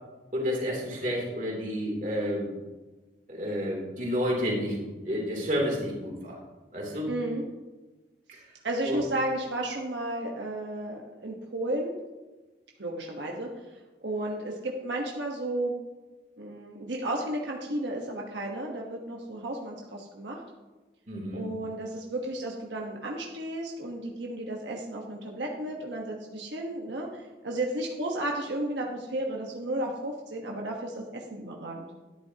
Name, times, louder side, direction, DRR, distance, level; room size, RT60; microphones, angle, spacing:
voice 1, 0.3-2.5 3.3-6.4 6.7-7.1 8.3-8.4 8.8-9.0 21.1-21.5, equal, 45° right, -2 dB, 3.2 m, -30 dB
voice 2, 7.1-7.4 8.6-11.9 12.8-13.5 14.0-15.7 16.4-20.4 21.3-31.9, right 1 dB, 90° right, -1 dB, 1.3 m, -33 dB
12.5 x 10.5 x 2.9 m, 1.2 s
head